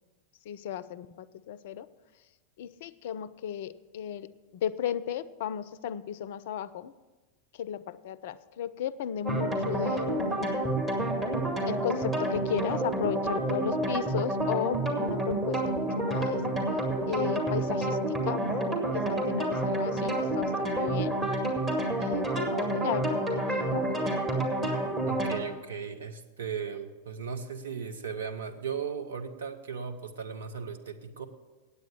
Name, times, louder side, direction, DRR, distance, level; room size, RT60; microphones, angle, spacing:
voice 1, 0.5-1.9 2.6-6.9 7.5-10.6 11.7-16.4 17.1-18.6 18.9-21.2 22.0-23.8, left 9 dB, 55° left, 17 dB, 0.4 m, -35 dB
sound 1, 9.2-25.4, right 1 dB, 15° right, 2.0 m, -29 dB
voice 2, 25.1-31.3, right 6 dB, 65° right, 6 dB, 0.9 m, -37 dB
9.2 x 8.2 x 8.2 m, 1.3 s
figure-of-eight pair, 90°, 0 cm